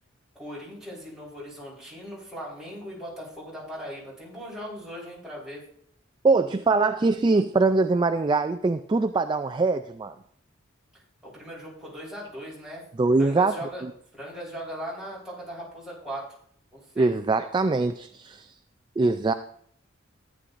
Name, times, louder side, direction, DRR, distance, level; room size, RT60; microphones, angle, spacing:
voice 1, 0.3-5.6 11.2-12.8 13.2-13.8 14.1-16.3 16.7-17.1, equal, 5° right, -7 dB, 3.9 m, -39 dB
voice 2, 6.2-10.1 13.0-13.5 17.0-18.5 19.0-19.3, right 3 dB, 20° right, 9 dB, 0.3 m, -22 dB
14.0 x 9.9 x 2.5 m, 0.65 s
head